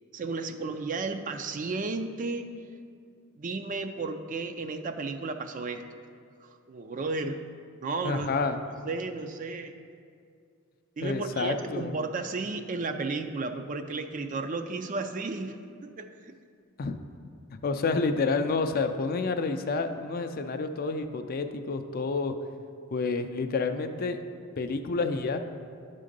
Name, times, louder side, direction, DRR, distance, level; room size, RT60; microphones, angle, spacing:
voice 1, 0.1-2.5 3.3-6.0 6.4-7.4 7.8-8.3 8.8-9.7 11.0-15.6 15.8-16.3, right 3 dB, 40° right, 7 dB, 0.4 m, -33 dB
voice 2, 8.0-8.6 11.0-11.9 16.8-17.0 17.6-22.3 22.9-24.2 24.6-25.4, left 4 dB, 45° left, 7 dB, 0.4 m, -29 dB
11.0 x 3.8 x 5.2 m, 2.3 s
head